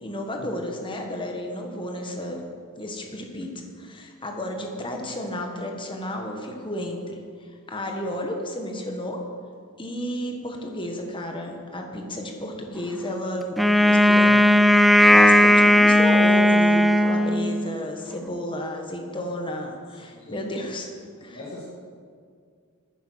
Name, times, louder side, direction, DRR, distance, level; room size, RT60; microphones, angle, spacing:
voice 1, 0.0-2.4 2.8-3.5 3.8-7.2 7.7-9.2 9.8-14.4 15.1-20.9 21.2-21.4, left 1 dB, 25° left, 2 dB, 1.4 m, -32 dB
Wind instrument woodwind instrument, 13.6-17.8, left 1 dB, ahead, 0.3 m, -16 dB
voice 2, 20.0-20.4 21.3-21.6, left 2 dB, 45° left, -6 dB, 2.1 m, -41 dB
10.0 x 9.1 x 6.3 m, 2.1 s
head